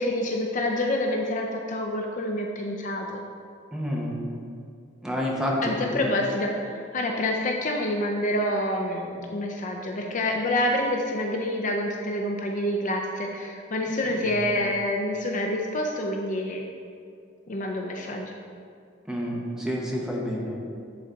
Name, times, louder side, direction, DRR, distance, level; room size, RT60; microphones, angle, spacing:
voice 1, 0.0-3.2 5.6-16.7 17.5-18.3, left 1 dB, 40° left, 2 dB, 0.5 m, -27 dB
voice 2, 3.7-4.2 5.0-5.6 5.9-6.1 14.1-14.3 19.1-20.7, equal, 5° right, -3 dB, 1.0 m, -29 dB
9.9 x 3.9 x 4.0 m, 2.3 s
head